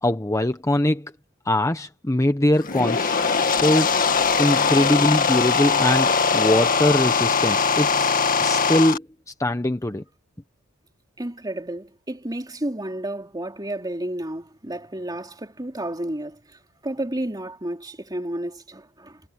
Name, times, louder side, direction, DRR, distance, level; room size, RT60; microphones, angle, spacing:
voice 1, 0.0-1.1 1.5-4.0 4.4-8.1 8.4-9.1 9.4-10.0, left 1 dB, 15° left, 0.9 m, -22 dB
sound 1, 2.5-9.0, left 5 dB, 40° left, 1.9 m, -21 dB
voice 2, 11.2-19.2, right 1 dB, 20° right, 3.3 m, -31 dB
head